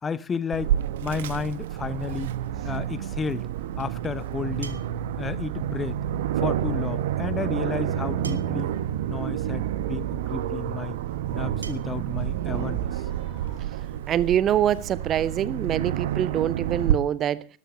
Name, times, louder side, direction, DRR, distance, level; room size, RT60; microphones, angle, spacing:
voice 1, 0.0-2.3 2.6-3.5 3.8-4.8 5.2-6.0 6.4-8.7 9.0-11.0 11.3-13.6, left 5 dB, 15° left, 0.7 m, -32 dB
Aircraft, 0.5-16.9, right 11 dB, 55° right, 1.0 m, -29 dB
sound 1, 4.6-5.1 6.6-6.7 8.2-8.7 9.9-10.0 11.6-11.7, right 4 dB, 75° right, 1.3 m, -42 dB
voice 2, 14.1-17.5, right 10 dB, 30° right, 0.6 m, -24 dB
12.5 x 12.5 x 7.2 m
figure-of-eight pair, 90°, 0 cm